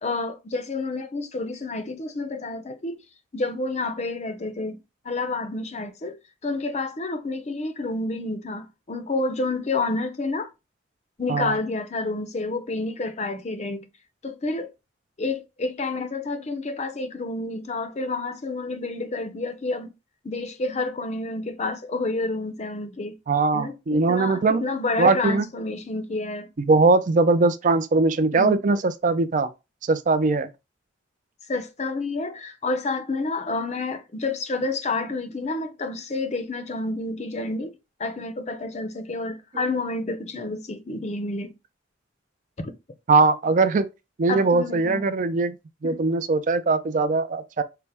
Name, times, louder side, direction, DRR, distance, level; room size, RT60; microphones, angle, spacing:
voice 1, 0.0-3.0 3.3-6.1 6.4-10.5 11.2-13.8 14.2-14.7 15.2-19.9 20.2-23.1 23.5-26.5 28.3-28.6 31.5-37.7 38.0-41.5 42.6-42.7 44.3-45.0 45.8-46.0, left 3 dB, 35° left, 0.5 m, -29 dB
voice 2, 23.3-24.6 25.0-25.5 26.6-29.5 29.8-30.5 43.1-43.9 44.2-45.6 45.8-47.6, right 3 dB, 40° right, 0.4 m, -21 dB
5.6 x 2.0 x 3.3 m
head